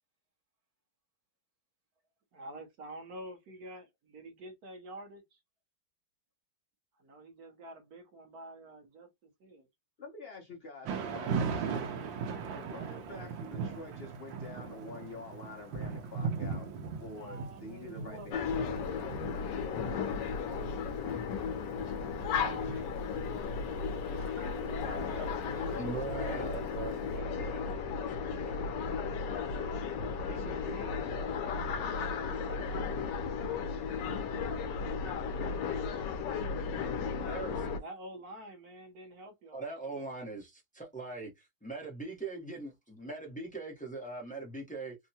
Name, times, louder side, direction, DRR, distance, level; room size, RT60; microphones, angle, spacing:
voice 1, 2.3-5.2 7.0-9.1 9.4-9.7 17.0-19.2 19.8-20.9 22.3-23.0 24.0-25.9 30.2-31.7 32.0-32.9 37.8-40.1, right 1 dB, 60° right, 1.2 m, -48 dB
voice 2, 10.0-11.9 12.6-16.7 17.0-18.9 24.4-26.8 30.3-32.2, left 3 dB, 50° left, 0.7 m, -47 dB
Thunder / Rain, 10.8-26.9, right 5 dB, 80° right, 1.4 m, -39 dB
sound 1, 18.3-37.8, left 5 dB, 75° left, 1.2 m, -35 dB
voice 3, 25.8-28.6 37.2-37.8 39.5-45.0, right 3 dB, 10° left, 0.4 m, -41 dB
3.6 x 2.1 x 2.7 m
omnidirectional pair, 2.0 m